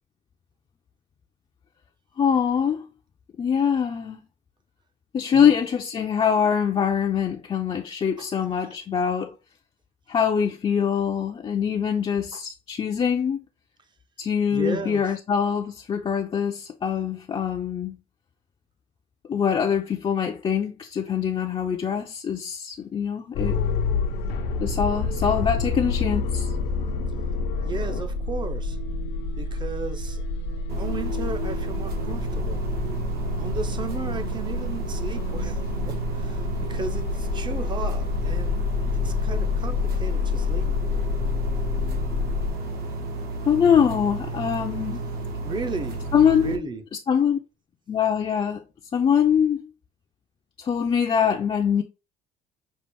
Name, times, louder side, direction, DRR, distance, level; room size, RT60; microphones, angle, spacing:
voice 1, 2.2-2.9 3.4-4.2 5.1-9.3 10.1-13.4 14.2-18.0 19.3-23.6 24.6-26.5 43.5-45.0 46.1-47.4 47.9-48.6 48.9-49.7 50.6-51.8, left 7 dB, 30° left, 0.5 m, -23 dB
voice 2, 8.2-8.8 12.3-12.4 14.5-15.0 27.6-28.8 29.4-30.2 30.8-32.6 33.4-35.6 35.9-38.7 38.9-40.8 45.4-46.0 46.3-46.8, right 4 dB, 25° right, 0.6 m, -35 dB
sound 1, 23.3-42.5, left 4 dB, 80° left, 0.8 m, -28 dB
sound 2, 30.7-46.6, right 3 dB, 70° right, 1.1 m, -32 dB
5.4 x 2.5 x 3.4 m
cardioid pair, 110°, 17 cm